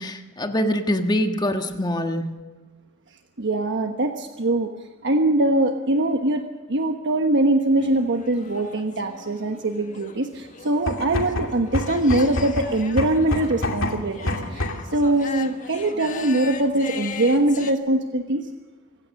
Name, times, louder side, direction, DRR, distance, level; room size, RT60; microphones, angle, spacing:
voice 1, 0.0-2.4, equal, 20° left, 5 dB, 1.5 m, -24 dB
voice 2, 3.4-4.7 5.0-18.5, right 1 dB, 55° right, 5 dB, 1.2 m, -22 dB
sound 1, 7.8-17.7, left 5 dB, 35° left, 1.6 m, -39 dB
sound 2, 10.7-15.0, left 1 dB, 65° left, 2.5 m, -28 dB
26.0 x 16.0 x 6.5 m, 1.3 s
head